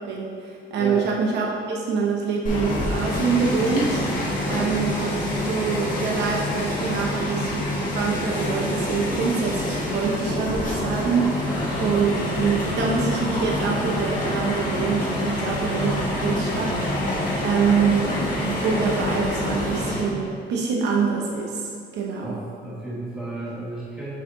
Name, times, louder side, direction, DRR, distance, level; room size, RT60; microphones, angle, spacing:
voice 1, 0.0-4.0 4.5-5.1 5.5-7.7 7.9-11.5 11.8-17.1 17.4-22.4, right 5 dB, 65° right, -1 dB, 0.7 m, -25 dB
sound 1, 2.4-20.0, left 1 dB, 45° left, 1.3 m, -26 dB
voice 2, 22.2-24.1, right 1 dB, 5° right, -9 dB, 1.3 m, -34 dB
6.3 x 4.5 x 3.8 m, 2.3 s
cardioid pair, 175°, 19 cm